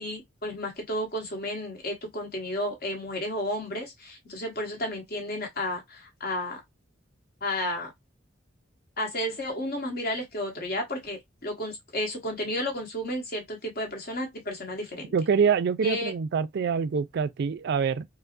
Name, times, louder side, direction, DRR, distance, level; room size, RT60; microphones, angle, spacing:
voice 1, 0.0-6.6 7.4-7.9 9.0-15.1 15.8-16.1, left 1 dB, 55° left, 1.3 m, -32 dB
voice 2, 15.1-18.1, right 6 dB, 60° right, 0.4 m, -25 dB
4.5 x 2.0 x 2.5 m
head